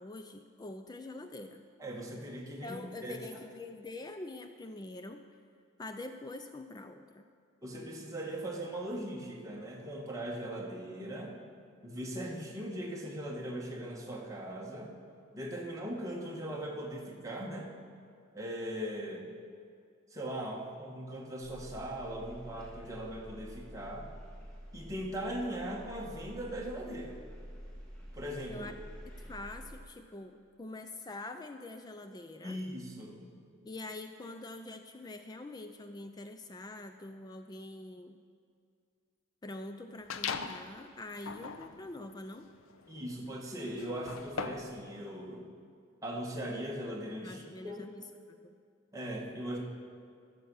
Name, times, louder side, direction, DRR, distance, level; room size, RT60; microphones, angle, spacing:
voice 1, 0.0-1.7 2.6-5.4 5.8-7.3 28.5-28.7 29.2-32.6 33.6-38.2 39.4-42.5 47.2-48.6, left 2 dB, 20° left, 7 dB, 0.4 m, -45 dB
voice 2, 1.8-3.2 7.6-11.3 11.8-14.9 15.3-17.7 18.3-19.3 20.1-24.1 24.7-27.1 28.1-28.7 32.4-33.5 42.9-45.4 46.0-47.9 48.9-49.6, right 1 dB, 15° right, -2 dB, 1.5 m, -39 dB
sound 1, 21.4-29.8, equal, 5° left, 1.8 m, -48 dB
sound 2, 40.1-40.7 41.2-44.8, left 6 dB, 85° left, 0.6 m, -40 dB
14.0 x 6.8 x 6.3 m, 2.3 s
head